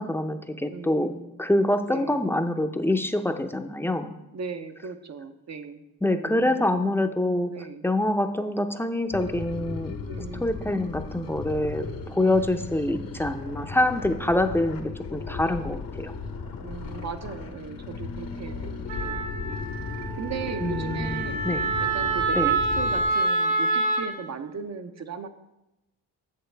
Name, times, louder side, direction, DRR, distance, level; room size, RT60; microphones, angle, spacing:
voice 1, 0.0-1.1 1.4-4.2 6.0-7.5 7.8-10.0 10.4-16.1 20.6-21.2 21.4-21.7 22.4-22.5, left 1 dB, 5° left, 7 dB, 0.6 m, -25 dB
voice 2, 0.7-1.4 1.8-2.2 4.3-5.8 6.1-6.9 7.5-7.8 10.0-11.0 12.2-12.7 14.2-14.8 16.6-19.7 20.2-21.4 21.8-25.3, right 5 dB, 45° right, 9 dB, 0.7 m, -38 dB
sound 1, 9.1-23.1, left 4 dB, 65° left, 1.0 m, -36 dB
Wind instrument woodwind instrument, 18.9-24.1, right 3 dB, 85° right, 1.3 m, -27 dB
7.5 x 6.8 x 3.4 m, 0.95 s
cardioid pair, 60°, 37 cm